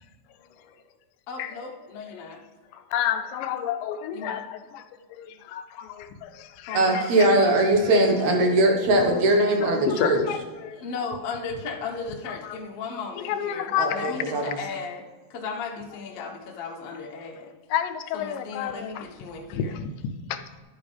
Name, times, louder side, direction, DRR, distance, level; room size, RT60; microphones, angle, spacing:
voice 1, 1.3-2.4 4.1-4.4 6.7-7.1 10.8-15.0 15.3-17.5 18.1-19.8, left 4 dB, 60° left, 0 dB, 1.6 m, -36 dB
voice 2, 2.9-4.6 5.5-5.6 6.0-6.3 6.6-7.0 9.8-10.8 13.3-14.1 17.7-19.0 19.5-19.7 20.3-20.4, left 9 dB, 80° left, 9 dB, 2.2 m, -28 dB
voice 3, 6.7-10.2 13.8-14.6, right 1 dB, 60° right, 2 dB, 2.5 m, -21 dB
11.0 x 9.7 x 3.3 m, 1.4 s
omnidirectional pair, 4.1 m